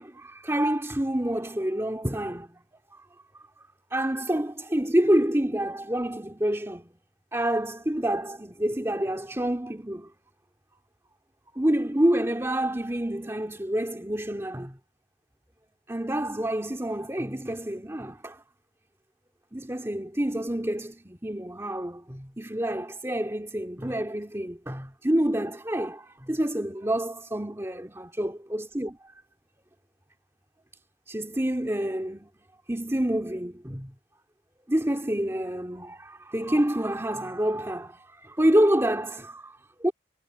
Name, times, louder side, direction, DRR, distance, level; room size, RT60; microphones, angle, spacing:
voice 1, 0.0-2.6 2.9-3.1 3.3-3.4 3.9-6.9 7.3-10.1 11.5-14.8 15.9-18.4 19.5-29.0 31.1-32.3 32.7-33.9 34.7-39.9, right 1 dB, 15° right, 2.4 m, -28 dB
head